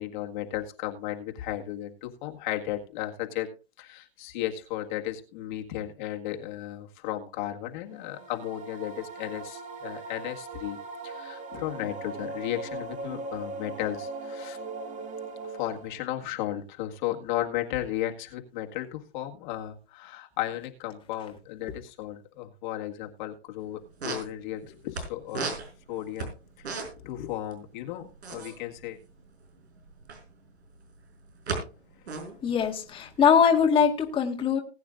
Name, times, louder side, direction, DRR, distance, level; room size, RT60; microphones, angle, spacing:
voice 1, 0.0-3.5 3.8-10.8 11.0-14.6 15.5-25.6 25.9-26.3 26.8-29.0, left 13 dB, 45° left, 2 dB, 1.9 m, -34 dB
sound 1, 7.9-16.1, right 3 dB, 25° right, 1.5 m, -39 dB
sound 2, 23.6-23.7 23.9-25.0 25.3-27.1 27.4-27.5 27.8-30.3 30.8-31.6 31.9-33.8, right 4 dB, 85° right, 5.0 m, -35 dB
voice 2, 32.4-34.6, left 7 dB, 15° left, 1 dB, 1.7 m, -22 dB
20.0 x 9.2 x 2.5 m, 0.33 s
hypercardioid pair, 140°, 32 cm